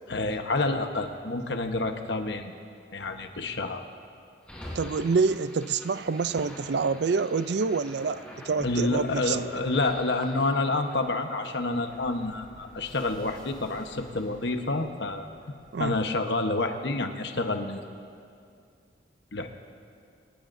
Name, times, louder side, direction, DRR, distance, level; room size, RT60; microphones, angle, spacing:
voice 1, 0.1-2.5 2.9-3.8 8.6-15.3 15.8-17.8 19.3-19.5, left 2 dB, 65° left, 5 dB, 1.1 m, -28 dB
sound 1, 4.4-16.6, equal, 5° left, 4.0 m, -46 dB
voice 2, 4.8-9.4 15.7-16.0, right 4 dB, 60° right, 15 dB, 0.4 m, -27 dB
25.0 x 19.5 x 2.7 m, 2.3 s
head